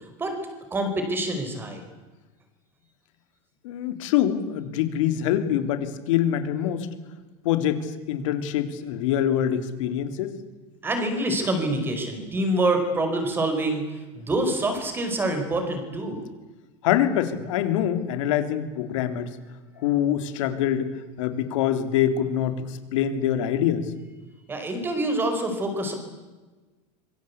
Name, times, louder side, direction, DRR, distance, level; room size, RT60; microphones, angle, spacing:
voice 1, 0.7-1.8 10.8-13.8 14.1-16.2 24.5-25.9, right 1 dB, 15° right, 6 dB, 4.9 m, -26 dB
voice 2, 3.6-6.9 7.4-10.3 16.8-19.3 19.8-20.9 21.2-23.9, left 10 dB, 85° left, 9 dB, 3.4 m, -25 dB
26.0 x 23.5 x 8.4 m, 1.2 s
supercardioid pair, 170°, 16 cm